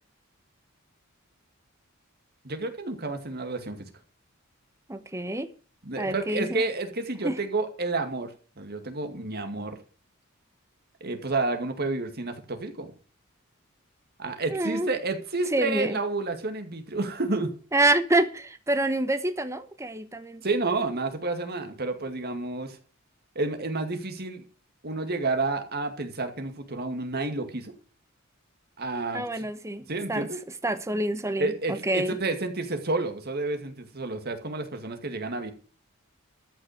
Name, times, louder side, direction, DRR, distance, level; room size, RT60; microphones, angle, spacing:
voice 1, 2.4-3.9 5.8-9.8 11.0-12.9 14.2-17.5 20.4-22.8 23.4-24.4 24.8-27.7 28.8-29.5 29.9-30.4 31.4-35.5, right 3 dB, 45° right, 2.1 m, -30 dB
voice 2, 4.9-5.5 6.0-6.6 7.2-7.4 14.5-14.9 15.5-16.0 17.7-20.4 29.1-30.3 30.6-32.2, right 2 dB, 15° right, 1.0 m, -27 dB
13.5 x 5.8 x 9.1 m
head